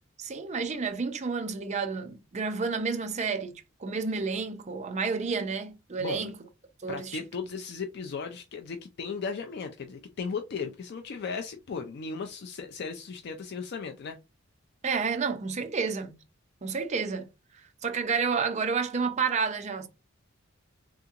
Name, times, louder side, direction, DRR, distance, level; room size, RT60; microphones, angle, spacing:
voice 1, 0.2-3.5 3.8-6.3 6.8-7.2 14.8-16.1 16.6-17.3 17.8-19.9, right 5 dB, 35° right, 0.5 m, -30 dB
voice 2, 6.0-6.3 6.9-14.2, left 5 dB, 55° left, 0.4 m, -36 dB
3.5 x 2.8 x 2.4 m
head